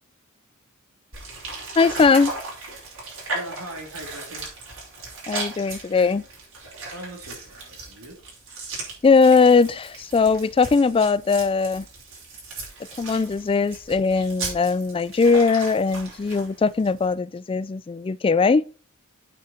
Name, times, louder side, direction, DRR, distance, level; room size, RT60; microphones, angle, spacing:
sound 1, 1.1-17.1, right 3 dB, 65° right, 5.2 m, -37 dB
voice 1, 1.8-2.3 5.3-6.2 9.0-11.9 13.0-18.6, left 4 dB, 25° left, 0.3 m, -20 dB
voice 2, 3.3-4.5 6.9-8.2, equal, 85° right, 3.2 m, -39 dB
8.4 x 7.0 x 4.4 m
head